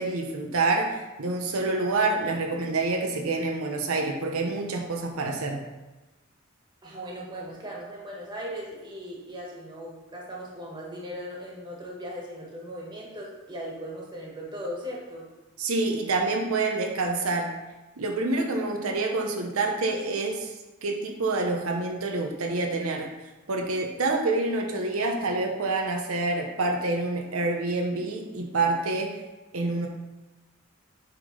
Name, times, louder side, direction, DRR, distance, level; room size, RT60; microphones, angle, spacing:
voice 1, 0.0-5.6 15.6-17.6 18.0-20.5 20.8-23.1 23.5-29.2 29.5-29.9, right 3 dB, 85° right, 2 dB, 0.8 m, -27 dB
voice 2, 6.8-15.3, equal, 20° right, -3 dB, 1.7 m, -38 dB
8.2 x 3.7 x 5.2 m, 1.1 s
head